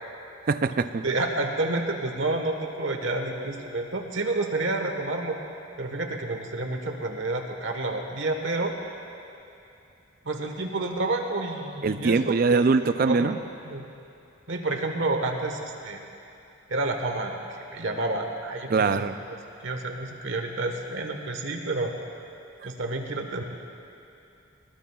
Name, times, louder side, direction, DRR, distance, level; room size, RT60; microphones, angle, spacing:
voice 1, 0.4-1.0 11.8-13.4 18.7-19.1, right 4 dB, 45° right, 11 dB, 0.4 m, -22 dB
voice 2, 1.0-5.4 5.8-8.7 10.2-12.6 13.1-13.3 13.6-13.8 14.5-16.0 16.7-18.9 19.6-21.9 22.6-23.4, right 2 dB, 60° right, 3 dB, 1.3 m, -29 dB
20.5 x 19.5 x 2.4 m, 2.8 s
head